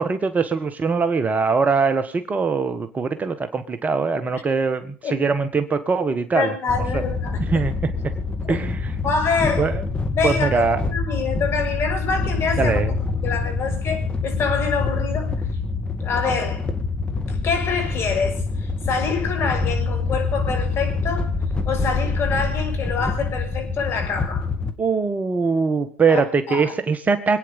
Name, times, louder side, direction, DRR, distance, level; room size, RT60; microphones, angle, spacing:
voice 1, 0.0-6.5 6.9-7.0 7.5-7.9 8.5-8.9 9.6-9.8 10.2-10.8 12.6-12.9 24.8-27.4, right 4 dB, 25° right, 1.4 m, -22 dB
voice 2, 6.3-7.6 8.4-8.6 9.0-9.7 10.1-12.8 13.2-15.3 16.0-16.7 17.3-21.3 21.6-24.5 26.1-26.2 26.5-26.7, left 5 dB, 40° left, 6.5 m, -26 dB
sound 1, 6.7-24.7, left 3 dB, 15° left, 2.4 m, -26 dB
26.0 x 9.6 x 5.3 m
hypercardioid pair, 85°, 7 cm